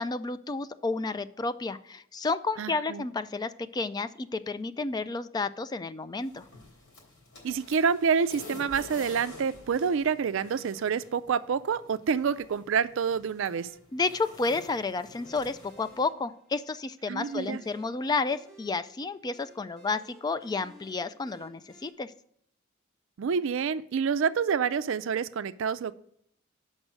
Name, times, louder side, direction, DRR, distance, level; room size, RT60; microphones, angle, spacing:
voice 1, 0.0-6.4 13.9-22.1, left 3 dB, 20° left, 13 dB, 0.3 m, -31 dB
voice 2, 2.6-3.1 7.4-13.7 17.1-17.6 23.2-25.9, right 6 dB, 65° right, 13 dB, 0.4 m, -28 dB
sound 1, 6.2-16.0, left 2 dB, 85° left, 3.5 m, -49 dB
sound 2, 13.5-21.9, right 1 dB, ahead, 1.3 m, -57 dB
6.4 x 5.4 x 6.1 m, 0.69 s
head